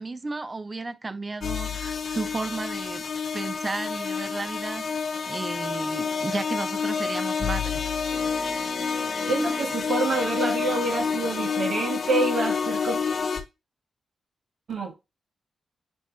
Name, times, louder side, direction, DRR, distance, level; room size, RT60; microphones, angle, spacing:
voice 1, 0.0-3.0 3.3-5.0 5.3-7.9, right 3 dB, 35° right, 0.6 m, -33 dB
sound 1, 1.4-13.4, left 6 dB, 60° left, 0.9 m, -29 dB
Brass instrument, 5.1-9.4, right 1 dB, 15° right, 1.9 m, -45 dB
sound 2, 8.1-13.2, equal, 10° left, 1.5 m, -41 dB
voice 2, 9.2-13.0 14.7-15.0, right 3 dB, 70° right, 1.5 m, -27 dB
6.2 x 3.0 x 2.7 m
supercardioid pair, 50°, 0 cm